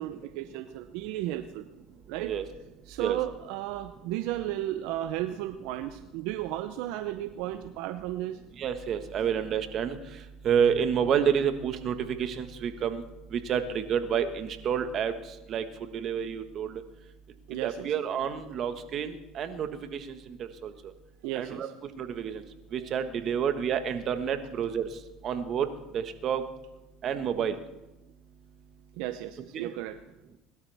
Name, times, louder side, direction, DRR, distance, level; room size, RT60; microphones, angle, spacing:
voice 1, 0.0-1.6 2.1-2.3 2.9-8.4 17.5-17.9 21.2-21.7 29.0-30.0, right 14 dB, 75° right, 10 dB, 0.6 m, -34 dB
voice 2, 8.6-10.0 10.4-13.0 13.3-15.1 15.5-15.6 15.9-16.7 17.6-20.2 20.6-20.7 21.3-21.7 22.0-22.4 22.7-24.9 25.2-25.7 25.9-26.4 27.0-27.6 29.5-29.7, right 8 dB, 50° right, 8 dB, 1.5 m, -29 dB
21.0 x 12.5 x 3.5 m, 0.99 s
supercardioid pair, 100°, 0 cm